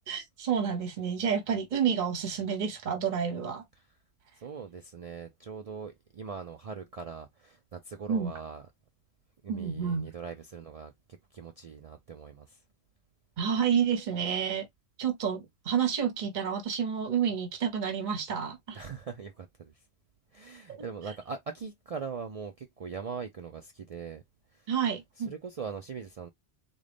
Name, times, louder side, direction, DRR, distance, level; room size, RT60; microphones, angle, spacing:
voice 1, 0.1-3.6 8.1-8.3 9.5-10.1 13.4-14.6 15.0-18.8 20.7-20.8 24.7-25.3, right 7 dB, 45° right, 1.0 m, -29 dB
voice 2, 4.3-8.7 9.4-10.9 11.3-12.6 18.7-19.8 20.3-24.2 24.5-24.7 25.2-26.3, right 5 dB, 60° right, 0.3 m, -41 dB
3.8 x 2.3 x 3.3 m
omnidirectional pair, 1.2 m